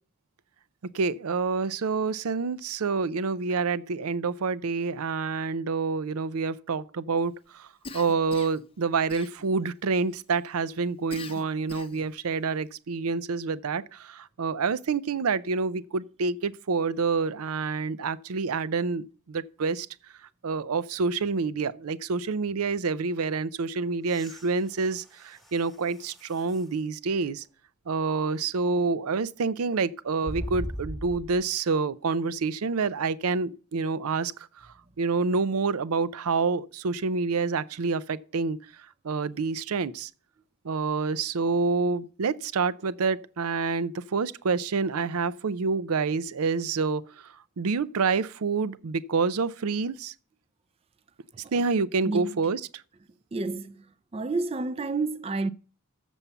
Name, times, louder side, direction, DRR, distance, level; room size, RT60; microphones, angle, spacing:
voice 1, 0.9-7.7 7.9-19.9 20.4-27.4 27.9-34.3 35.0-38.6 39.0-40.1 40.6-47.0 47.6-50.1 51.5-52.6, right 4 dB, 80° right, 0.5 m, -27 dB
Cough, 7.8-8.7 9.1-9.7 11.1-12.1, left 3 dB, 25° left, 0.6 m, -42 dB
sound 1, 24.0-26.8 27.4-27.5 30.2-31.5 33.3-33.4, equal, ahead, 1.3 m, -40 dB
voice 2, 52.0-52.4 53.3-53.8 54.1-55.5, right 3 dB, 25° right, 0.4 m, -29 dB
7.2 x 7.0 x 6.7 m
head